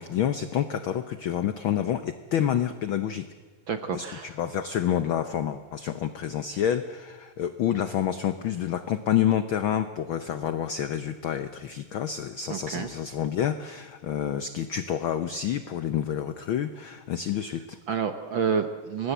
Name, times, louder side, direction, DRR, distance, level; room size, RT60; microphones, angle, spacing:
voice 1, 0.0-3.3 3.9-17.8, left 10 dB, 80° left, 11 dB, 1.1 m, -28 dB
voice 2, 3.7-4.3 12.5-12.9 17.9-19.1, right 6 dB, 60° right, 8 dB, 1.3 m, -29 dB
24.5 x 19.5 x 8.1 m, 1.4 s
omnidirectional pair, 3.4 m